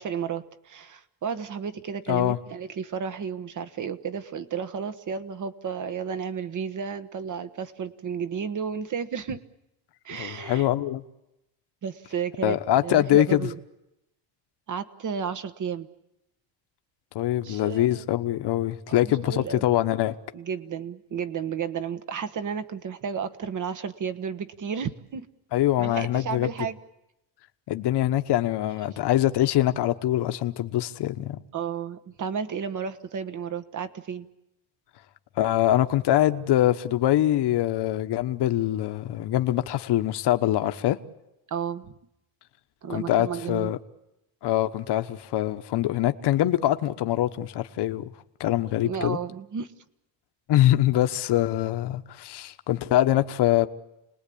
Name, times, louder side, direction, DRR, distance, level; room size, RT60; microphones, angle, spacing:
voice 1, 0.0-9.4 10.0-10.7 11.8-13.6 14.7-15.9 17.4-18.0 18.9-19.6 20.3-25.3 25.8-26.8 31.5-34.3 41.5-42.0 42.8-43.7 48.8-49.7, right 7 dB, 40° right, 1.3 m, -32 dB
voice 2, 10.2-11.0 12.4-13.4 17.1-20.1 25.5-26.5 27.7-31.4 35.4-41.0 42.9-43.8 44.4-48.0 48.4-49.2 50.5-53.7, left 13 dB, 55° left, 1.2 m, -23 dB
29.0 x 20.0 x 8.6 m
cardioid pair, 140°, 48 cm